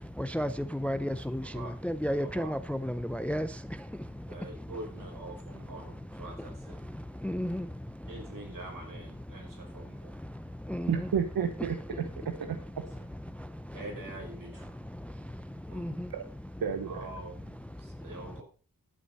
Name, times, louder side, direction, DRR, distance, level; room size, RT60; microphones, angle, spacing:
voice 1, 0.8-1.4 1.8-3.5 7.2-7.6 10.7-10.9 15.8-15.9, equal, 5° left, 0.5 m, -31 dB
voice 2, 1.4-1.8 2.2-2.5 4.3-6.8 8.0-10.1 13.7-14.7 15.7-16.0 16.9-18.4, right 2 dB, 65° right, 5.1 m, -45 dB
voice 3, 10.9-12.6 16.1-16.2 16.6-17.1, right 7 dB, 85° right, 1.1 m, -31 dB
11.5 x 8.4 x 5.3 m
wide cardioid pair, 155°, 35 cm